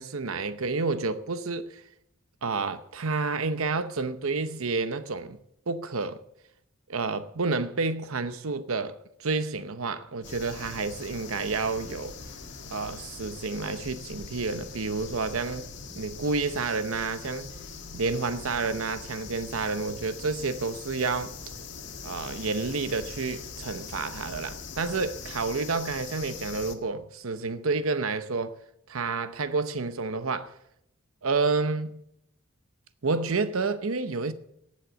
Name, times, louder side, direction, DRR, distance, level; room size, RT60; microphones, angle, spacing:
voice 1, 0.0-1.8 2.4-5.4 5.7-6.2 6.9-12.2 12.7-15.7 15.9-17.5 17.9-21.3 22.0-28.6 28.9-30.5 31.2-32.0 33.0-34.3, right 4 dB, 85° right, 0.8 m, -29 dB
sound 1, 10.2-26.7, left 5 dB, 55° left, 1.8 m, -42 dB
18.0 x 7.5 x 6.9 m
head